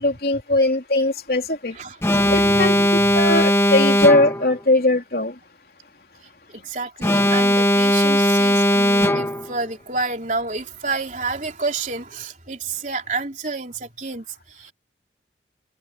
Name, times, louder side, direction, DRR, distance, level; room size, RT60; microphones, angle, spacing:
voice 1, 0.0-1.8 2.3-5.4, left 2 dB, 55° left, 3.6 m, -20 dB
voice 2, 1.7-3.3 6.5-14.7, right 3 dB, 45° right, 3.7 m, -30 dB
Alarm, 2.0-4.6 7.0-9.6, left 1 dB, 15° left, 1.0 m, -18 dB
head